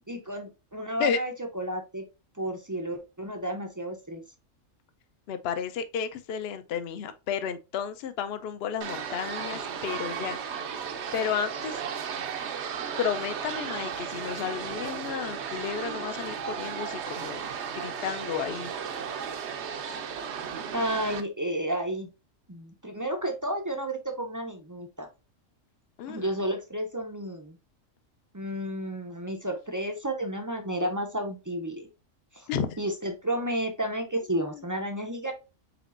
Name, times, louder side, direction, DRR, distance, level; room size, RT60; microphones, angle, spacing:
voice 1, 0.1-2.0 2.4-4.2 20.7-22.1 22.5-25.1 26.1-27.6 28.3-31.9 32.3-32.5 32.8-35.3, right 1 dB, 25° right, 0.4 m, -32 dB
voice 2, 5.3-10.7 11.1-11.8 13.0-17.4 17.7-18.7 26.0-26.3 32.5-32.8 34.3-34.6, left 7 dB, 60° left, 0.7 m, -32 dB
washington mono naturalhistory sealifelong, 8.8-21.2, right 7 dB, 65° right, 0.9 m, -35 dB
4.3 x 4.0 x 2.5 m
omnidirectional pair, 1.4 m